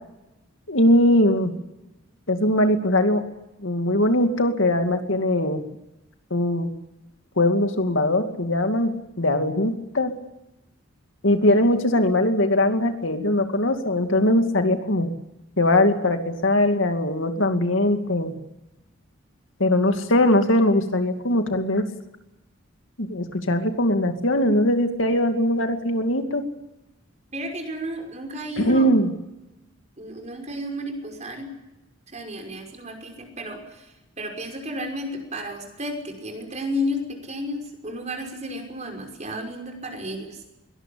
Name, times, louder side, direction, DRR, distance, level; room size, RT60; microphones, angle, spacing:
voice 1, 0.7-1.5 2.3-3.2 3.6-5.6 6.3-6.7 7.4-8.9 9.2-10.1 11.2-15.1 15.6-18.3 19.6-21.9 23.0-26.4 28.6-29.1, left 1 dB, 70° left, 6 dB, 2.4 m, -21 dB
voice 2, 27.3-28.9 30.0-31.5 32.1-33.9 34.2-40.4, left 1 dB, 35° right, 3 dB, 5.7 m, -32 dB
22.5 x 19.5 x 8.6 m, 0.96 s
head